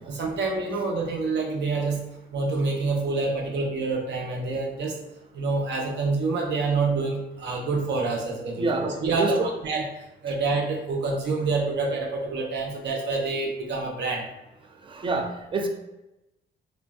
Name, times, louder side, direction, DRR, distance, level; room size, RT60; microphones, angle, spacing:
voice 1, 0.1-2.0 2.3-4.9 5.3-9.9 10.2-14.2, right 3 dB, 60° right, 1 dB, 0.7 m, -27 dB
voice 2, 8.6-9.5 14.9-15.7, right 3 dB, 25° right, 4 dB, 0.4 m, -27 dB
3.1 x 2.4 x 2.3 m, 0.96 s
cardioid pair, 90°, 20 cm